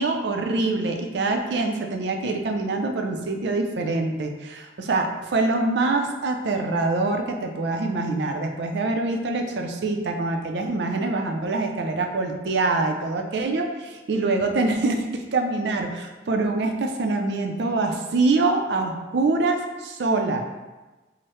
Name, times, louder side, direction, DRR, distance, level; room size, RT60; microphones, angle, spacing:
voice 1, 0.0-20.4, right 3 dB, 75° right, 4 dB, 0.4 m, -25 dB
4.5 x 2.1 x 3.1 m, 1.2 s
head